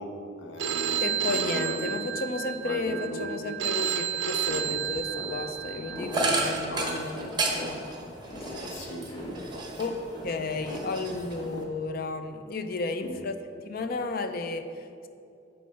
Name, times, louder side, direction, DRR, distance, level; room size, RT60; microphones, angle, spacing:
voice 1, 0.0-1.9 2.6-3.5 6.7-7.3 8.6-9.7 13.0-13.2, equal, 85° left, 2 dB, 1.0 m, -38 dB
Telephone, 0.6-6.6, right 9 dB, 75° right, 0.4 m, -31 dB
voice 2, 1.0-7.8 8.4-8.8 9.8-9.9 10.2-13.3 13.6-15.1, left 3 dB, 55° left, 8 dB, 0.5 m, -33 dB
sound 1, 4.5-11.6, left 1 dB, 20° left, 0.9 m, -41 dB
sound 2, 6.1-10.1 10.5-11.6, right 2 dB, 25° right, 0.8 m, -31 dB
6.4 x 4.4 x 5.5 m, 2.6 s
head